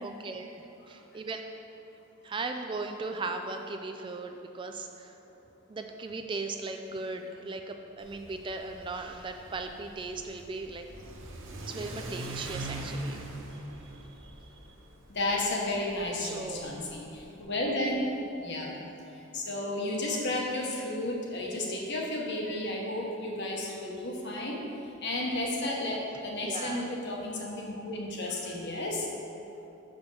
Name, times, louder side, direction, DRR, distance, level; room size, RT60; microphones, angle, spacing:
voice 1, 0.0-1.4 2.2-5.2 5.7-10.9 11.7-13.2 13.9-14.6 16.2-16.6 26.4-26.8, right 3 dB, 25° right, 5 dB, 0.3 m, -38 dB
Car / Accelerating revving vroom, 8.0-17.4, right 1 dB, 60° right, 0.9 m, -42 dB
voice 2, 15.1-18.1 18.4-18.7 19.1-24.6 25.0-29.1, left 1 dB, 55° left, -1 dB, 1.2 m, -32 dB
6.8 x 5.1 x 6.2 m, 2.9 s
head